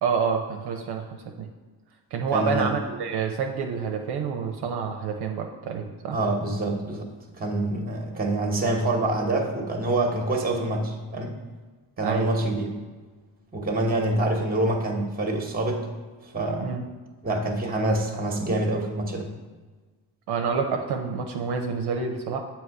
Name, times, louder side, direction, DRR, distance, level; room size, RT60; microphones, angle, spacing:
voice 1, 0.0-1.1 1.4-1.5 2.1-6.2 12.0-12.3 16.6-16.8 20.3-22.4, right 6 dB, 65° right, 3 dB, 0.7 m, -28 dB
voice 2, 2.3-2.8 6.1-7.0 7.4-11.4 12.0-12.7 13.5-15.9 16.3-16.7 17.2-19.3, right 2 dB, 20° right, 2 dB, 1.1 m, -26 dB
7.5 x 3.0 x 4.7 m, 1.3 s
cardioid pair, 85°, 43 cm